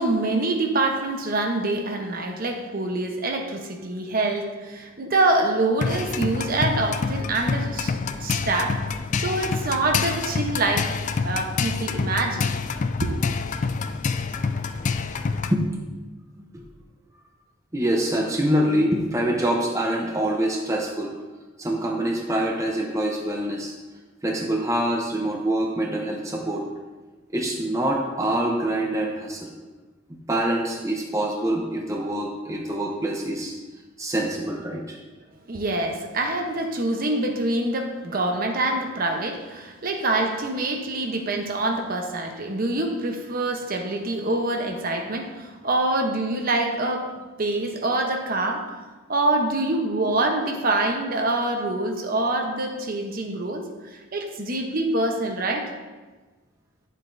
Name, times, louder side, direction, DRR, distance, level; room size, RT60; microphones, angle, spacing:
voice 1, 0.0-7.9 8.2-8.8 9.2-11.0 11.2-12.5 13.0-13.1 35.5-48.7 49.1-55.7, right 2 dB, 45° right, 3 dB, 0.9 m, -25 dB
sound 1, 5.8-15.6, left 4 dB, 35° left, 0.3 m, -27 dB
voice 2, 17.7-21.2 21.6-23.7 24.2-26.6 27.3-29.5 30.3-33.5 34.0-35.0, right 1 dB, 15° right, 0 dB, 0.7 m, -25 dB
11.0 x 7.5 x 2.7 m, 1.3 s
head